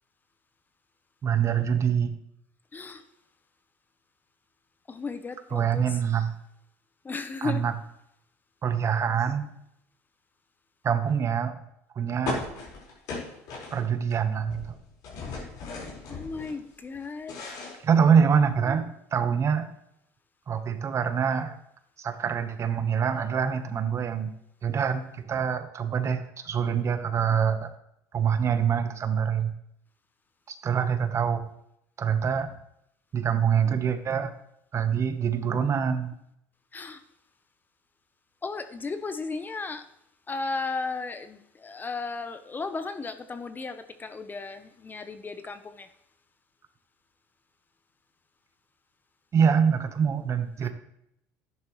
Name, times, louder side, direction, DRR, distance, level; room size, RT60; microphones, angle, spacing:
voice 1, 1.2-2.2 5.5-6.4 7.4-7.7 8.6-9.5 10.8-11.6 11.9-12.5 13.7-14.8 17.8-19.7 20.5-21.6 22.0-24.3 24.6-27.7 28.1-29.5 30.5-31.5 32.0-32.5 33.1-34.3 34.7-36.1 49.3-50.7, right 7 dB, 40° right, 1.1 m, -25 dB
voice 2, 2.7-3.0 4.9-5.9 7.0-7.6 16.1-17.3 36.7-37.0 38.4-39.8 40.3-45.9 50.6-50.7, left 4 dB, 25° left, 0.9 m, -35 dB
sound 1, 12.3-14.1 14.4-16.5 16.9-18.5, left 3 dB, 65° left, 4.7 m, -37 dB
12.0 x 10.5 x 3.2 m
supercardioid pair, 85°, 7 cm